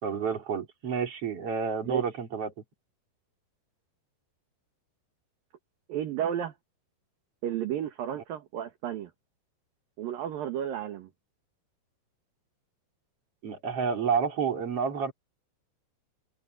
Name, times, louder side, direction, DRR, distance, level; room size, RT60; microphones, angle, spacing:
voice 1, 0.0-2.5 13.4-15.1, right 6 dB, 35° right, 4.2 m, -29 dB
voice 2, 5.9-6.5 7.4-9.1 10.0-11.1, right 10 dB, 60° right, 3.0 m, -32 dB
open air
omnidirectional pair, 5.4 m